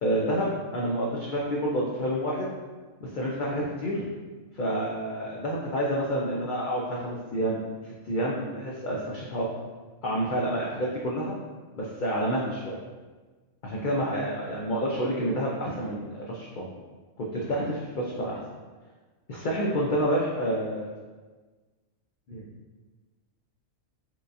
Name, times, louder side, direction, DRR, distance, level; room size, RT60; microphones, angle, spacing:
voice 1, 0.0-2.5 3.0-4.0 4.5-7.6 7.8-9.5 10.0-11.4 11.7-12.8 13.6-16.7 17.2-18.4 19.3-20.9 22.3-22.5, equal, 70° left, -4 dB, 0.4 m, -29 dB
4.4 x 2.5 x 2.5 m, 1.3 s
omnidirectional pair, 1.4 m